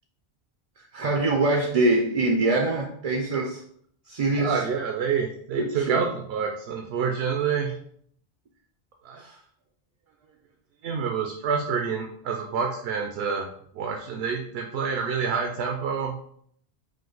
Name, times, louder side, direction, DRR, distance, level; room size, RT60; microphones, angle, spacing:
voice 1, 0.9-3.6 4.1-4.6 5.6-6.0 9.1-9.4, right 2 dB, 50° right, 1 dB, 0.5 m, -24 dB
voice 2, 4.4-7.7 9.0-9.2 10.8-13.5 13.7-16.1, right 6 dB, 80° right, 3 dB, 0.8 m, -27 dB
5.0 x 2.2 x 3.8 m, 0.65 s
omnidirectional pair, 1.0 m